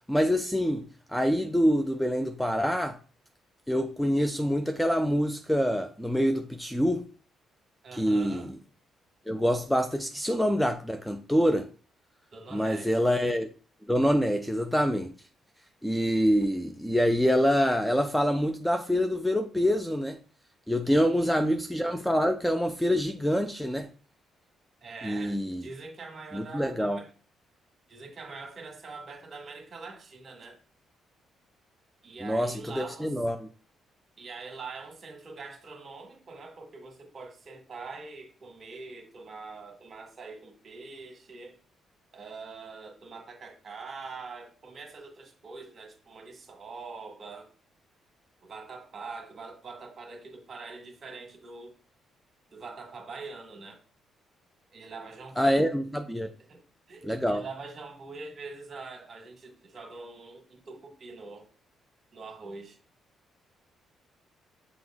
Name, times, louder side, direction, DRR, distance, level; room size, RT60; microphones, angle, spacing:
voice 1, 0.1-0.8 1.1-3.0 3.7-7.0 7.9-8.4 9.3-11.7 12.5-13.5 13.9-15.1 15.8-20.2 20.7-23.9 25.0-25.6 26.3-27.0 32.2-33.4 55.4-56.3 57.0-57.4, equal, 5° left, 0.4 m, -26 dB
voice 2, 7.8-8.6 12.3-13.1 20.8-21.4 24.8-27.1 27.9-30.6 32.0-33.2 34.2-41.6 42.1-47.5 48.4-51.7 52.5-53.8 54.7-55.5 56.5-56.6 56.9-61.5 62.1-62.8, right 4 dB, 45° right, 1.6 m, -44 dB
6.1 x 2.5 x 3.5 m
cardioid pair, 90°, 0 cm